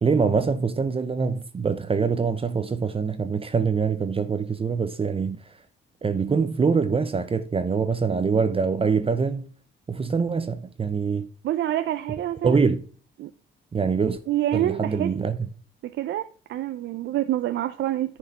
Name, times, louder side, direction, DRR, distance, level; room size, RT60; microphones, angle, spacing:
voice 1, 0.0-5.4 6.0-9.5 9.9-11.3 12.4-12.8 13.7-14.2 14.5-15.4, right 5 dB, 30° right, 0.7 m, -24 dB
voice 2, 11.4-12.6 13.2-13.3 14.3-15.2 15.8-18.2, right 13 dB, 70° right, 0.5 m, -27 dB
11.0 x 4.8 x 4.1 m
cardioid pair, 90°, 20 cm